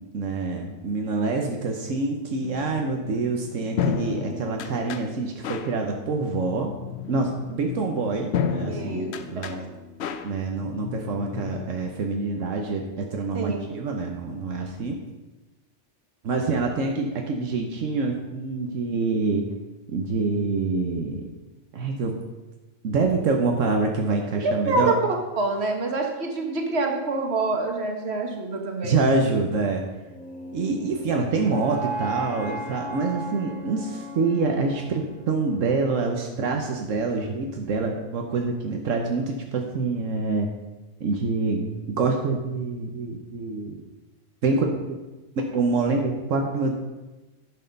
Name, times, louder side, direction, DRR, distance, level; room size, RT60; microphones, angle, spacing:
voice 1, 0.0-6.7 7.1-9.6 10.2-15.0 16.2-19.5 19.9-21.3 21.7-22.2 22.8-25.0 28.8-29.8 30.5-40.5 41.0-43.8 44.4-44.7 45.5-46.7, right 3 dB, 85° right, 2 dB, 1.3 m, -26 dB
sound 1, 2.4-11.7, left 7 dB, 65° left, 0.9 m, -32 dB
voice 2, 8.7-9.1 13.3-13.6 24.4-24.9 25.4-28.9, right 3 dB, 60° right, 2 dB, 1.7 m, -26 dB
sound 2, 30.1-36.2, right 1 dB, 5° left, 1.6 m, -37 dB
11.0 x 6.5 x 5.3 m, 1.1 s
omnidirectional pair, 1.3 m